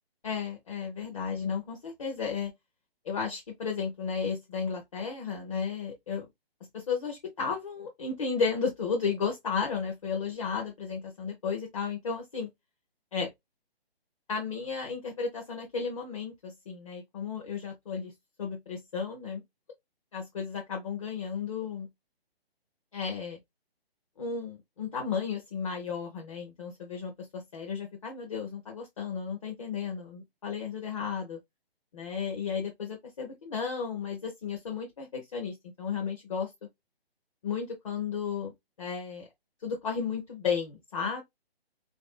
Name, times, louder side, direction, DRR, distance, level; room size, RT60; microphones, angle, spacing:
voice 1, 0.2-2.5 3.0-6.3 6.7-12.5 13.1-13.3 14.3-18.1 18.4-19.4 20.1-21.9 22.9-23.4 24.2-31.4 31.9-36.5 37.4-39.3 39.6-41.2, left 6 dB, 35° left, 0.6 m, -33 dB
3.0 x 2.6 x 2.3 m
figure-of-eight pair, 140°, 31 cm